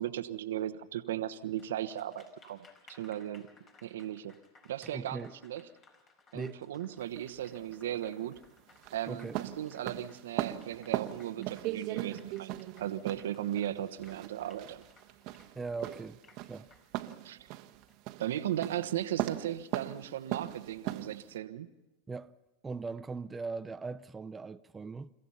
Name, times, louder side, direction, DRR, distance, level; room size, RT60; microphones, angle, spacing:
voice 1, 0.0-3.5 3.8-4.3 4.6-5.6 6.3-8.4 8.9-14.8 17.2-17.6 18.2-21.7, right 12 dB, 80° right, 1.2 m, -37 dB
Applause, 1.4-19.2, left 3 dB, 35° left, 4.9 m, -62 dB
voice 2, 4.8-5.3 6.3-6.6 9.1-9.4 15.5-16.2 16.5-16.7 22.1-22.3 22.6-25.1, right 4 dB, 15° right, 0.6 m, -39 dB
sound 1, 7.0-21.4, right 15 dB, 55° right, 1.3 m, -39 dB
30.0 x 15.0 x 5.7 m
hypercardioid pair, 100°, 0 cm